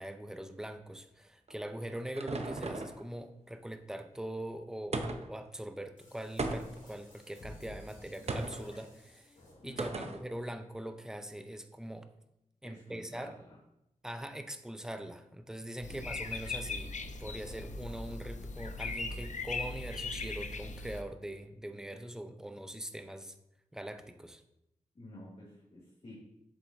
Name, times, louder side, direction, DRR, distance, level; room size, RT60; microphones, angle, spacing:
voice 1, 0.0-9.3 9.6-12.1 12.6-13.3 14.0-23.3 23.7-24.4, right 1 dB, 5° right, 8 dB, 0.6 m, -42 dB
sound 1, 1.5-3.0 4.9-5.4 6.4-6.9 8.3-8.7 9.8-10.2, right 2 dB, 55° right, 0.8 m, -36 dB
sound 2, 6.0-10.1, left 1 dB, 90° left, 2.9 m, -53 dB
voice 2, 9.6-10.1 12.6-13.6 15.8-16.1 24.9-26.1, left 1 dB, 45° left, -8 dB, 2.3 m, -50 dB
sound 3, 15.8-21.0, left 3 dB, 65° left, 0.6 m, -39 dB
7.6 x 7.1 x 2.7 m, 0.84 s
cardioid pair, 60°, 13 cm